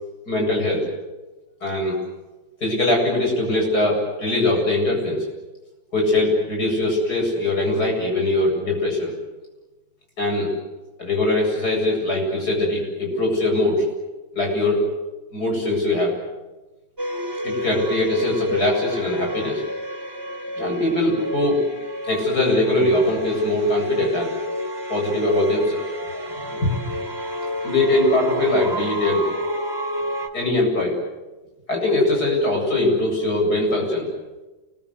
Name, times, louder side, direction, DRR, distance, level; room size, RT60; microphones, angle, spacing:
voice 1, 0.3-0.9 1.6-2.0 2.6-5.3 5.9-9.1 10.2-10.5 11.0-13.9 14.3-14.9 15.3-16.1 17.4-19.6 20.5-21.7 22.0-24.3 24.9-25.8 26.5-26.7 27.6-29.3 30.3-31.0 31.7-34.1, left 2 dB, 55° left, 1 dB, 8.8 m, -21 dB
sound 1, 17.0-30.3, equal, 10° right, 3.1 m, -30 dB
28.5 x 22.0 x 8.2 m, 1.1 s
omnidirectional pair, 2.0 m